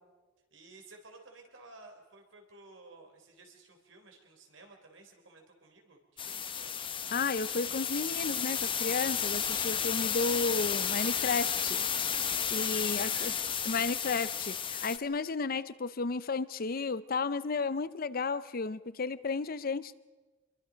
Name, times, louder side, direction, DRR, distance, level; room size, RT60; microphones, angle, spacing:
voice 1, 0.5-6.7 12.8-13.8 14.1-14.3, right 3 dB, 85° right, 3 dB, 3.8 m, -54 dB
sound 1, 6.2-15.0, left 7 dB, 25° left, 0.9 m, -32 dB
voice 2, 7.1-11.8 12.5-13.3 13.7-19.9, left 4 dB, 50° left, 16 dB, 0.6 m, -33 dB
26.5 x 22.5 x 5.1 m, 1.2 s
head